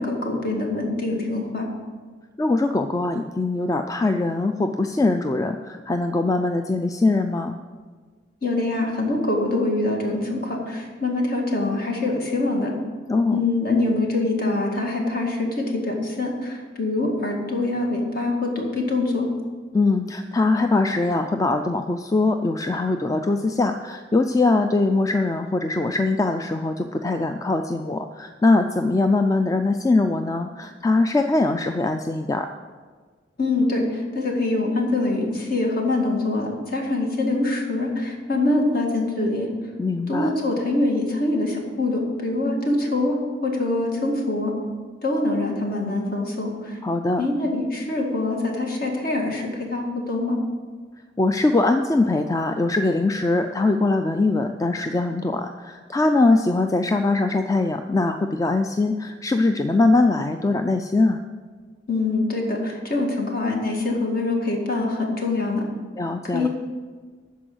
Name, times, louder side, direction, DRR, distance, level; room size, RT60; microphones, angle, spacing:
voice 1, 0.0-1.7 8.4-12.7 13.3-19.3 33.4-39.5 40.1-44.5 45.0-46.8 47.2-50.4 61.9-65.7 66.3-66.5, left 2 dB, 55° left, 0 dB, 1.9 m, -24 dB
voice 2, 2.4-7.6 13.1-13.4 19.7-32.5 39.8-40.3 46.8-47.3 51.2-61.2 66.0-66.5, left 2 dB, 20° left, 6 dB, 0.3 m, -22 dB
12.5 x 4.7 x 7.9 m, 1.5 s
head